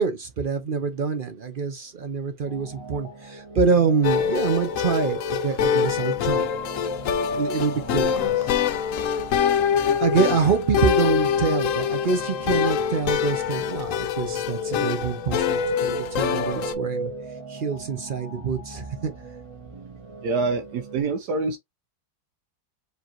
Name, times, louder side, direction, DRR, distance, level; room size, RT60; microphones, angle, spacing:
voice 1, 0.0-6.5 7.3-8.5 10.0-17.1 17.5-19.1, right 5 dB, 60° right, 0.5 m, -26 dB
sound 1, 2.4-21.0, right 2 dB, 20° right, 1.2 m, -37 dB
sound 2, 4.0-16.7, left 8 dB, 65° left, 0.9 m, -25 dB
voice 2, 20.2-21.6, right 3 dB, 75° right, 1.3 m, -25 dB
4.8 x 3.3 x 2.9 m
omnidirectional pair, 1.8 m